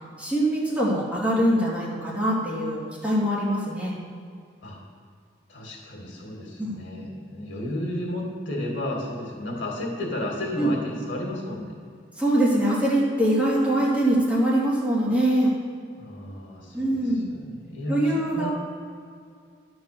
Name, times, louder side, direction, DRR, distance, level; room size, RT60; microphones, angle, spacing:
voice 1, 0.2-3.9 6.6-6.8 10.6-10.7 12.2-15.5 16.7-17.3 17.9-18.5, right 1 dB, 5° right, -8 dB, 2.3 m, -23 dB
voice 2, 5.5-11.8 16.0-18.5, left 1 dB, 90° left, -1 dB, 2.3 m, -32 dB
11.0 x 4.7 x 6.8 m, 2.3 s
head